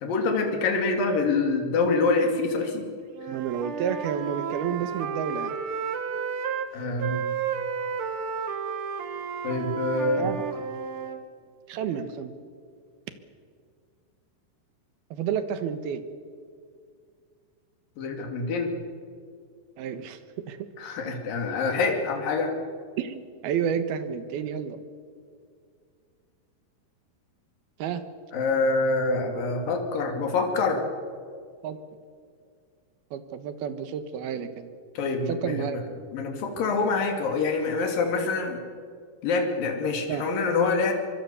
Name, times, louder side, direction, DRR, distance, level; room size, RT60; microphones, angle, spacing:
voice 1, 0.0-2.9 6.7-7.3 9.4-10.3 18.0-18.7 20.8-22.5 28.3-30.8 35.0-35.8 36.1-38.6 39.2-40.9, left 3 dB, 65° left, 3 dB, 4.3 m, -26 dB
Wind instrument woodwind instrument, 3.1-6.7 7.0-11.2, right 6 dB, 55° right, 1.5 m, -32 dB
voice 2, 3.3-5.6 10.2-10.4 11.7-12.4 15.1-16.0 19.8-20.2 20.5-20.6 23.0-24.8 27.8-28.0 31.6-31.8 33.1-34.7 35.3-35.8 40.1-40.3, right 8 dB, 75° right, 10 dB, 3.2 m, -30 dB
24.5 x 24.0 x 7.1 m, 2.2 s
omnidirectional pair, 4.5 m